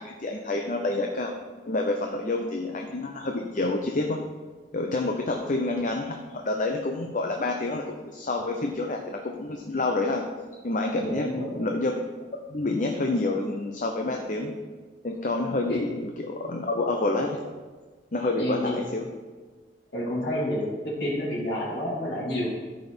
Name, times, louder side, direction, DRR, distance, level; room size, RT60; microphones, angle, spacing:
voice 1, 0.0-1.3 1.7-4.2 4.7-6.2 6.4-7.8 8.1-10.2 10.6-11.3 11.5-12.0 12.5-14.5 15.0-17.4 18.1-19.1, left 2 dB, 45° left, 2 dB, 0.8 m, -28 dB
voice 2, 11.0-11.6 15.7-15.8 18.4-18.8 19.9-22.5, left 1 dB, 65° left, -6 dB, 2.8 m, -29 dB
13.0 x 5.4 x 4.5 m, 1.4 s
head